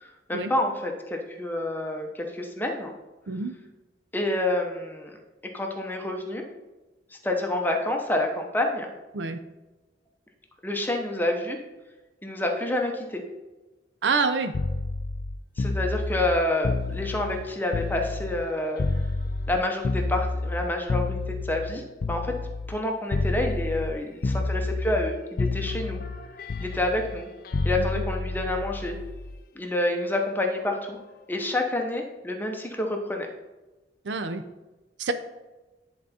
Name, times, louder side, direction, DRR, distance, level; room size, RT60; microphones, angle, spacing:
voice 1, 0.0-2.9 4.1-5.2 5.5-6.5 7.1-8.9 10.6-11.6 12.2-13.2 15.6-18.8 19.5-22.3 22.7-26.0 26.6-27.3 27.6-29.0 29.5-31.0 31.3-33.3, left 1 dB, 10° left, 2 dB, 0.8 m, -28 dB
voice 2, 14.0-14.5 27.8-27.9 34.0-34.4 35.0-35.1, right 4 dB, 80° right, 9 dB, 0.6 m, -26 dB
sound 1, 14.5-18.5 18.8-22.8 23.1-23.9 24.2-25.1 25.4-29.4 30.6-30.8, left 3 dB, 55° left, 0.4 m, -29 dB
10.0 x 3.9 x 4.2 m, 1.1 s
head